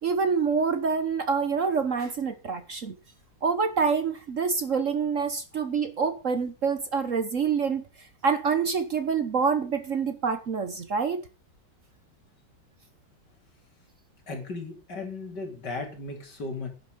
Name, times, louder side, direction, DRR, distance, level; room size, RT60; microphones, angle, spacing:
voice 1, 0.0-3.0 3.4-7.9 8.2-11.2, right 5 dB, 50° right, 1.3 m, -26 dB
voice 2, 14.3-16.7, left 3 dB, 65° left, 4.1 m, -36 dB
12.0 x 10.5 x 5.2 m
omnidirectional pair, 2.0 m